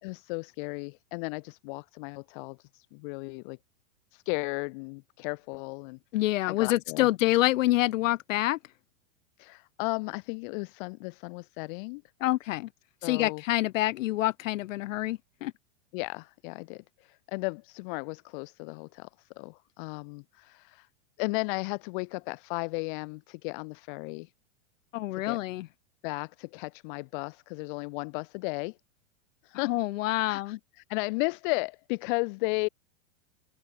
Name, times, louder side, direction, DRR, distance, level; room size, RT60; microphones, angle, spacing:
voice 1, 0.0-3.6 4.1-6.0 6.5-7.1 9.4-12.0 13.0-13.4 15.9-20.9 21.2-24.3 25.1-25.4 26.0-28.8 29.4-29.8 30.1-32.7, left 30 dB, 40° left, 1.3 m, -35 dB
voice 2, 6.1-8.6 12.2-12.7 13.0-15.5 24.9-25.7 29.7-30.6, left 16 dB, 70° left, 0.5 m, -27 dB
open air
hypercardioid pair, 145°, 40 cm